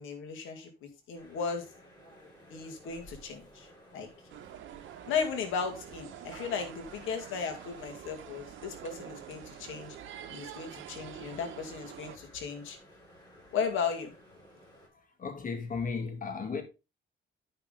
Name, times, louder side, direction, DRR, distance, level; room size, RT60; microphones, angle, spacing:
voice 1, 0.0-1.6 2.5-3.7 3.9-4.1 5.1-10.0 10.3-12.8 13.5-14.1, left 6 dB, 85° left, 2.1 m, -35 dB
sound 1, 1.1-14.9, equal, 20° left, 5.5 m, -56 dB
sound 2, 4.3-12.2, right 11 dB, 80° right, 0.9 m, -47 dB
voice 2, 15.2-16.6, left 5 dB, 45° left, 2.2 m, -34 dB
9.7 x 5.9 x 3.8 m
cardioid pair, 90°, 20 cm